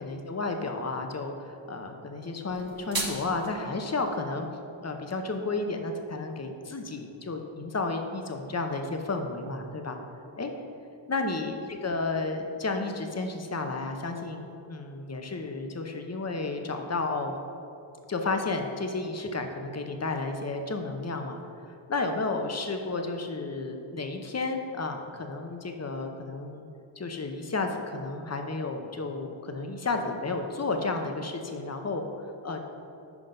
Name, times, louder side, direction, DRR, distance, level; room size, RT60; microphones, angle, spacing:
voice 1, 0.0-4.5 4.8-10.0 10.4-10.5 11.1-17.3 18.1-26.7 27.0-32.0 32.4-32.6, left 3 dB, 35° left, 4 dB, 0.7 m, -32 dB
sound 1, 2.5-3.5, right 2 dB, 45° right, 1.1 m, -34 dB
6.0 x 5.1 x 5.2 m, 2.7 s
wide cardioid pair, 40°, 48 cm